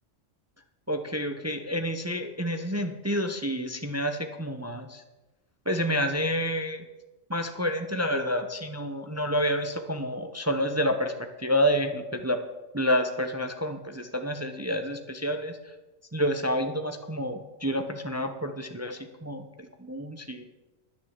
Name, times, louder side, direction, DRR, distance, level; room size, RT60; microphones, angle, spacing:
voice 1, 0.9-5.0 5.7-6.8 7.3-11.1 11.4-12.4 12.7-15.6 16.1-20.4, equal, 15° right, 7 dB, 0.7 m, -29 dB
10.0 x 9.8 x 7.4 m, 1.1 s
omnidirectional pair, 1.4 m